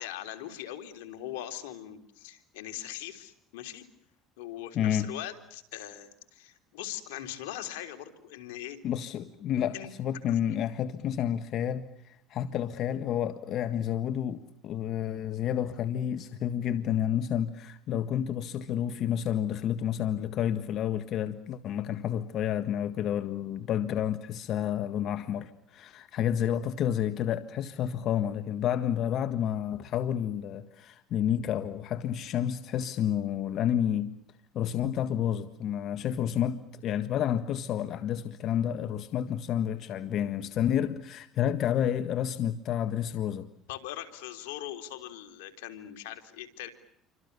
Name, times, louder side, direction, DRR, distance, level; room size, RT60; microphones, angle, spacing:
voice 1, 0.0-3.9 4.4-8.8 9.7-9.9 43.7-46.7, left 12 dB, 85° left, 3.5 m, -40 dB
voice 2, 4.7-5.1 8.8-34.1 34.5-43.5, left 10 dB, 55° left, 1.6 m, -30 dB
29.0 x 25.5 x 6.9 m
supercardioid pair, 95°, 0 cm